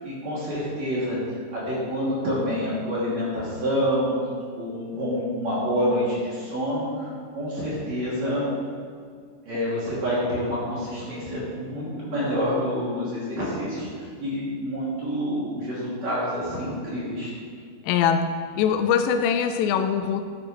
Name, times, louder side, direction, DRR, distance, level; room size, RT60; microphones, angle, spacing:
voice 1, 0.0-1.2 1.5-4.1 4.5-8.5 9.5-17.3, equal, 45° right, -8 dB, 3.5 m, -27 dB
voice 2, 17.8-20.2, left 7 dB, 85° left, 8 dB, 2.7 m, -22 dB
11.5 x 11.0 x 3.2 m, 2.1 s
omnidirectional pair, 5.1 m